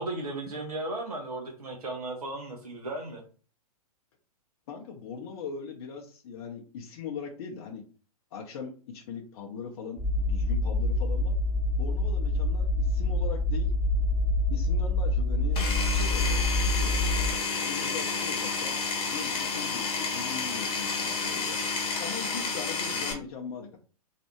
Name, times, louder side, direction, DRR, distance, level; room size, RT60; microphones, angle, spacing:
voice 1, 0.0-3.2, right 2 dB, 75° right, 2 dB, 0.8 m, -35 dB
voice 2, 4.7-7.8 8.3-11.3 11.8-13.7 14.5-15.6 15.9-16.3 16.6-17.1 17.6-18.8 19.1-21.6 22.0-23.8, left 6 dB, 45° left, 0 dB, 0.6 m, -40 dB
sound 1, 10.0-17.3, left 2 dB, 5° right, 0.5 m, -26 dB
Power tool, 15.5-23.1, left 4 dB, 30° left, 1.0 m, -30 dB
3.2 x 2.5 x 2.9 m, 0.38 s
figure-of-eight pair, 110°, 19 cm